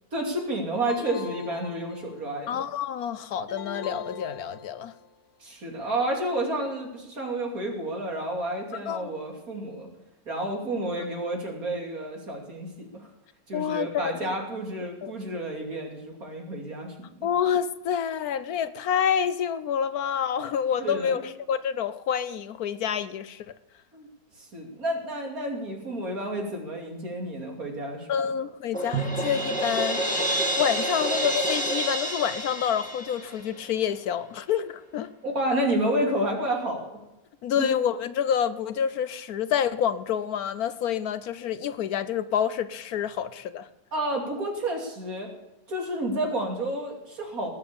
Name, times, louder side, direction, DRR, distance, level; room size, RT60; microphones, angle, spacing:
voice 1, 0.1-2.6 5.4-9.9 10.3-13.1 13.5-17.1 20.8-21.1 23.9-24.1 24.5-28.1 35.2-37.0 37.6-37.7 43.9-45.3 45.7-47.5, right 1 dB, 60° right, 3.3 m, -30 dB
sound 1, 0.9-2.4 3.5-5.1, left 4 dB, 55° left, 1.3 m, -40 dB
voice 2, 2.5-4.9 8.9-9.1 13.5-14.3 15.0-15.1 17.2-23.5 28.1-30.3 30.6-35.1 37.4-43.7, left 8 dB, 70° left, 1.2 m, -28 dB
Crash cymbal, 28.7-33.7, right 1 dB, 5° left, 2.5 m, -28 dB
Drum, 28.9-31.1, right 7 dB, 85° right, 2.3 m, -36 dB
19.5 x 8.0 x 6.9 m
omnidirectional pair, 1.7 m